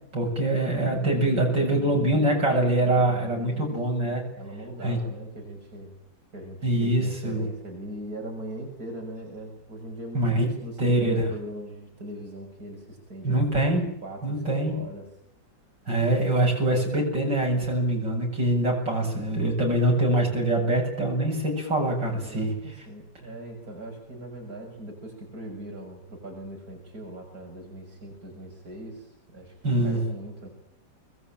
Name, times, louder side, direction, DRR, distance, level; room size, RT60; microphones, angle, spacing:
voice 1, 0.1-4.2 4.8-5.0 6.6-7.5 10.1-10.5 10.8-11.3 13.2-13.9 14.2-14.8 15.9-22.5 29.6-30.0, right 1 dB, 65° right, 0 dB, 8.5 m, -24 dB
voice 2, 3.0-3.7 4.3-5.9 6.3-13.4 14.0-15.1 22.2-29.5 29.8-30.5, right 1 dB, 50° right, 0 dB, 7.2 m, -40 dB
25.5 x 21.5 x 9.2 m, 0.72 s
omnidirectional pair, 2.1 m